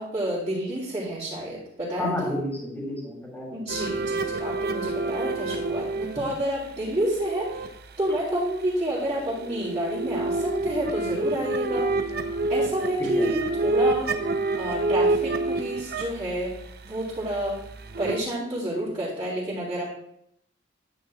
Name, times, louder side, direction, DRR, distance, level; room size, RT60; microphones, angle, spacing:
voice 1, 0.0-2.3 3.5-7.6 8.0-11.9 12.5-14.1 14.6-16.5 16.8-17.6 18.0-19.8, right 1 dB, 25° right, -11 dB, 3.7 m, -29 dB
voice 2, 2.0-3.6 13.0-13.3, left 1 dB, 10° left, -3 dB, 3.3 m, -31 dB
sound 1, 3.7-8.1 9.1-18.2, right 2 dB, 60° right, 0.8 m, -28 dB
11.0 x 9.3 x 2.5 m, 0.75 s
head